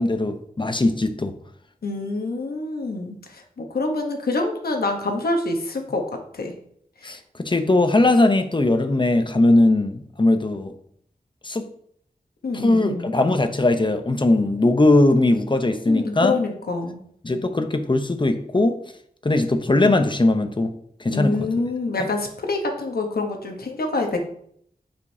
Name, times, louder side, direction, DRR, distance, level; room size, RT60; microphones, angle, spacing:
voice 1, 0.0-1.3 7.0-10.7 11.4-11.7 12.5-16.4 17.2-18.8 19.2-20.7 21.0-21.5, left 2 dB, 30° left, 7 dB, 0.7 m, -19 dB
voice 2, 1.8-6.1 6.3-6.5 7.0-7.2 12.4-13.1 15.8-17.0 21.1-24.2, left 2 dB, 90° left, 3 dB, 1.1 m, -26 dB
8.0 x 5.2 x 2.8 m, 0.66 s
wide cardioid pair, 65°, 15 cm